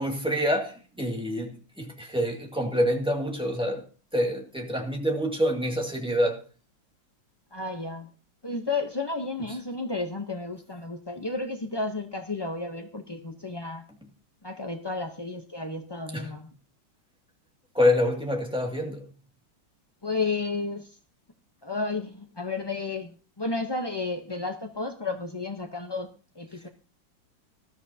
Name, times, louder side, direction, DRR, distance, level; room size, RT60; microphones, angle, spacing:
voice 1, 0.0-3.9 4.1-6.4 16.1-16.4 17.7-19.1, equal, 5° right, 2.0 m, -26 dB
voice 2, 7.5-8.1 8.4-13.8 14.4-16.5 20.0-20.9 21.6-26.1 26.4-26.7, left 3 dB, 40° left, 0.3 m, -32 dB
19.0 x 13.0 x 2.8 m
omnidirectional pair, 2.0 m